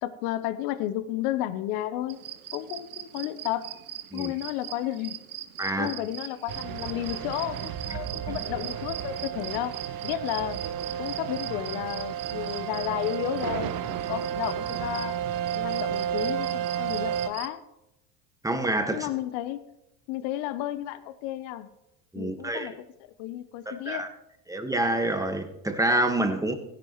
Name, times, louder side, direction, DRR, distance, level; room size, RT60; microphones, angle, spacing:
voice 1, 0.0-2.2 2.5-3.7 4.1-5.2 5.8-9.8 10.0-10.6 11.0-15.1 15.5-17.6 18.9-19.6 20.1-21.7 22.1-22.7 23.2-24.1, left 13 dB, 65° left, 0.9 m, -32 dB
sound 1, 2.1-17.5, right 12 dB, 85° right, 0.8 m, -41 dB
voice 2, 5.6-5.9 8.3-8.4 18.4-19.1 22.1-22.7 23.6-24.1 24.5-26.5, right 1 dB, 10° right, 1.6 m, -27 dB
sound 2, 6.5-17.3, right 9 dB, 55° right, 1.0 m, -32 dB
16.0 x 10.5 x 3.2 m
hypercardioid pair, 75°, 42 cm